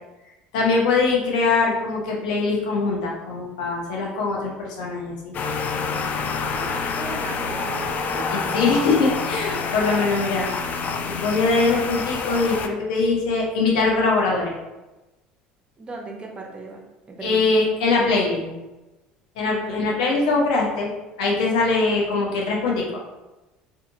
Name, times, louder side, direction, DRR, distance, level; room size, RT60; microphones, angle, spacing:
voice 1, 0.5-5.3 8.3-10.5 11.0-14.5 17.2-18.5 19.4-20.9 21.2-22.8, left 3 dB, 85° left, -2 dB, 0.7 m, -22 dB
sound 1, 5.3-12.7, left 5 dB, 45° left, 0.3 m, -27 dB
voice 2, 6.2-7.8 8.1-8.3 9.8-10.0 15.8-16.8 17.2-17.4 19.6-19.9, right 3 dB, 30° right, 0 dB, 0.7 m, -38 dB
2.7 x 2.4 x 2.6 m, 1.1 s
hypercardioid pair, 80°, 4 cm